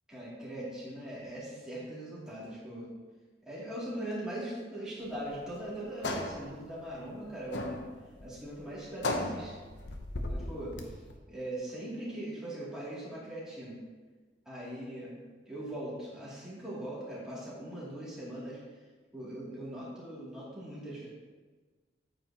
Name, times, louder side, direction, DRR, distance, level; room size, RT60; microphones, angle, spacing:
voice 1, 0.1-2.9 3.4-7.8 8.2-9.6 10.3-11.0 11.3-13.8 14.4-18.6 19.1-21.1, right 1 dB, 5° right, -9 dB, 2.6 m, -40 dB
sound 1, 5.0-11.2, left 2 dB, 80° left, 0.8 m, -37 dB
8.7 x 8.0 x 2.9 m, 1.4 s
head